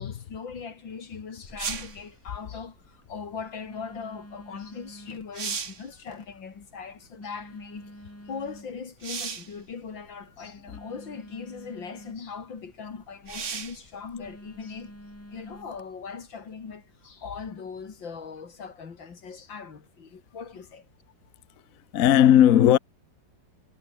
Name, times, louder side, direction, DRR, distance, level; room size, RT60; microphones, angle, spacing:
voice 1, 0.0-7.9 8.3-14.9 15.3-20.8, left 5 dB, 90° left, 3.3 m, -40 dB
Telephone, 1.5-15.8, equal, 5° left, 4.5 m, -49 dB
sound 1, 1.6-2.0 4.7-4.8 5.2-5.9 9.0-9.6 10.6-10.7 13.3-13.8 17.4-17.5, right 6 dB, 40° right, 1.7 m, -34 dB
voice 2, 21.9-22.8, left 11 dB, 55° left, 1.1 m, -17 dB
omnidirectional pair, 2.0 m